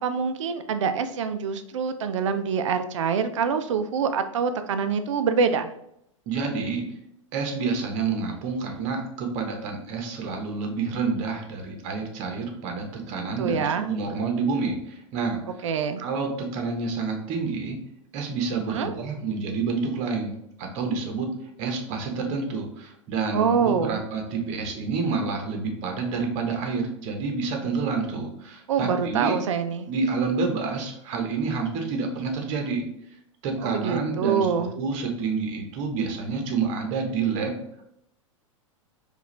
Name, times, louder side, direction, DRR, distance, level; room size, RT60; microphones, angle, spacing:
voice 1, 0.0-5.7 13.1-13.9 15.6-16.0 18.7-18.9 23.3-24.0 28.7-29.9 33.6-34.7, right 6 dB, 65° right, 9 dB, 0.4 m, -25 dB
voice 2, 6.3-6.8 7.3-15.7 16.0-17.8 18.1-29.4 29.9-32.8 33.4-34.5 34.8-37.5, right 4 dB, 45° right, 3 dB, 1.0 m, -28 dB
4.7 x 2.5 x 3.2 m, 0.76 s
figure-of-eight pair, 95°, 17 cm